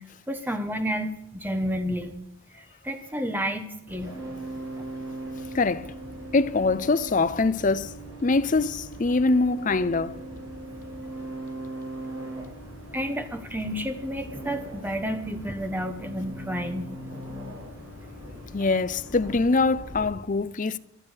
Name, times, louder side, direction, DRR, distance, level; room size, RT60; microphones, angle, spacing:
voice 1, 0.3-2.1 2.5-4.2 12.9-17.0, equal, 10° right, 1.2 m, -31 dB
sound 1, 3.9-20.1, right 1 dB, 65° right, 5.6 m, -39 dB
voice 2, 5.5-5.9 6.3-7.9 8.2-10.2 18.5-20.8, left 3 dB, 35° left, 0.5 m, -23 dB
13.0 x 11.5 x 6.4 m
head